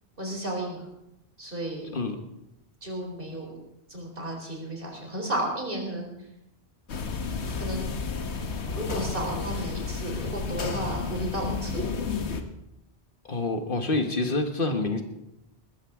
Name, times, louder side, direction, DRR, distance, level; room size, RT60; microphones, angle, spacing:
voice 1, 0.2-0.8 1.4-1.9 2.8-3.5 3.9-6.1 7.6-7.9 8.7-11.8, right 1 dB, 55° right, 1 dB, 4.1 m, -33 dB
sound 1, 6.9-12.4, left 4 dB, 85° left, 1.4 m, -31 dB
voice 2, 13.2-15.0, left 3 dB, 55° left, 5 dB, 1.6 m, -27 dB
20.5 x 14.0 x 3.7 m, 0.86 s
omnidirectional pair, 1.1 m